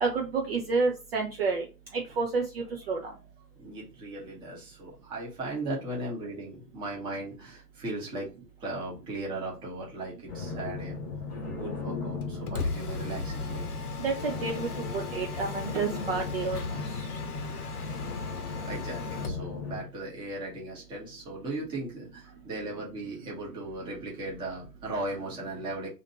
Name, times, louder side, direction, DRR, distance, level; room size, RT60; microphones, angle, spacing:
voice 1, 0.0-1.6 1.9-3.0 14.0-16.6, right 4 dB, 40° right, 0 dB, 0.6 m, -29 dB
voice 2, 3.6-8.3 8.6-10.9 11.4-13.7 18.1-25.9, right 2 dB, 10° right, -4 dB, 0.9 m, -37 dB
sound 1, 10.3-19.8, left 4 dB, 20° left, 1.0 m, -37 dB
Mechanisms, 12.2-19.5, left 4 dB, 65° left, 0.8 m, -37 dB
2.9 x 2.5 x 4.1 m, 0.31 s
figure-of-eight pair, 125°, 49 cm